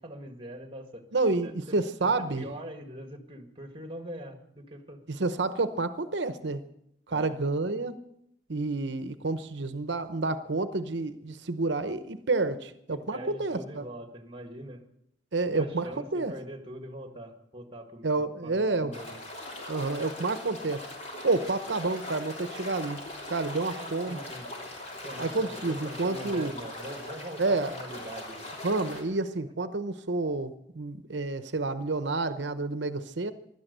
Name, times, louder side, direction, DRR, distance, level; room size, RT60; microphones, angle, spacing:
voice 1, 0.0-1.1 1.4-5.0 7.1-7.4 12.9-14.8 15.5-19.2 23.7-24.5 25.0-28.5, right 1 dB, 30° right, 6 dB, 1.8 m, -43 dB
voice 2, 1.1-2.4 5.1-6.6 7.1-8.0 8.5-13.9 15.3-16.3 18.0-18.9 19.7-20.8 21.2-23.0 23.3-24.2 25.2-26.5 27.4-27.7 28.6-33.3, right 3 dB, 70° right, 11 dB, 0.9 m, -29 dB
sound 1, 18.9-29.0, left 1 dB, 35° left, 3.4 m, -40 dB
16.5 x 12.0 x 6.7 m, 0.79 s
head